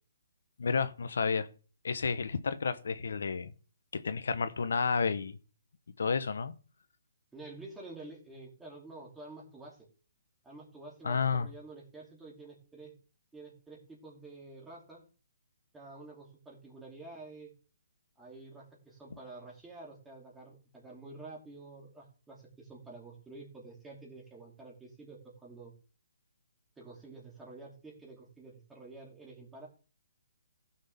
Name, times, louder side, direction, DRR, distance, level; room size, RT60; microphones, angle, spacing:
voice 1, 0.6-1.5 1.8-3.5 3.9-5.4 6.0-6.5 11.0-11.5, left 5 dB, 75° left, 11 dB, 1.1 m, -31 dB
voice 2, 7.3-9.8 10.4-12.9 13.3-15.0 15.7-17.5 18.2-25.7 26.8-29.7, right 3 dB, 5° right, -3 dB, 2.9 m, -49 dB
15.5 x 6.3 x 3.6 m, 0.38 s
hypercardioid pair, 165°, 0 cm